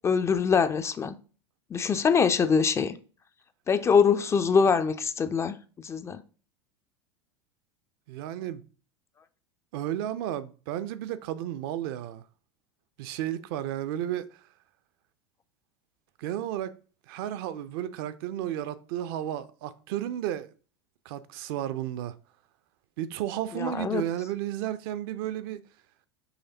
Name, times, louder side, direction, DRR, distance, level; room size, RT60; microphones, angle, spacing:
voice 1, 0.0-1.2 1.7-2.9 3.7-5.6 5.8-6.2 23.6-24.0, left 6 dB, 20° left, 0.3 m, -23 dB
voice 2, 8.1-8.6 9.7-12.2 13.0-14.3 16.2-16.7 17.1-20.5 21.1-22.1 23.0-25.6, right 12 dB, 55° right, 0.5 m, -33 dB
5.7 x 3.1 x 2.8 m
figure-of-eight pair, 80°, 14 cm